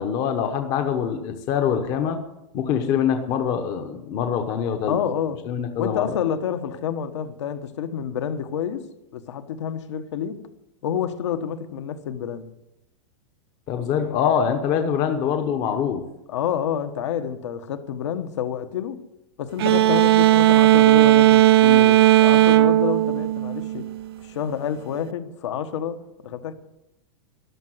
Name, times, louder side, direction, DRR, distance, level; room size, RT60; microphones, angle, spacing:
voice 1, 0.0-2.2 2.5-5.0 5.5-6.1 13.7-16.0, left 8 dB, 25° left, 1.0 m, -24 dB
voice 2, 4.9-5.4 5.7-8.8 9.1-10.4 10.8-12.5 16.3-19.0 19.4-23.9 24.2-26.5, left 8 dB, 60° left, 1.4 m, -28 dB
sound 1, 19.6-24.0, right 15 dB, 50° right, 0.4 m, -16 dB
14.0 x 11.0 x 7.9 m
supercardioid pair, 175°, 17 cm